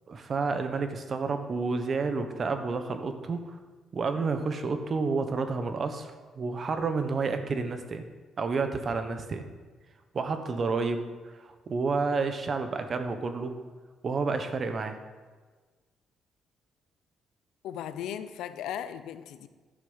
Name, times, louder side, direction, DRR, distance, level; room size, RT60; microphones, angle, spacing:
voice 1, 0.1-3.6 3.9-8.0 8.4-9.4 10.1-13.6 14.0-15.0, right 4 dB, 45° right, 8 dB, 1.2 m, -30 dB
voice 2, 17.6-19.5, left 10 dB, 85° left, 11 dB, 0.6 m, -37 dB
11.5 x 6.6 x 5.7 m, 1.4 s
cardioid pair, 90°, 0 cm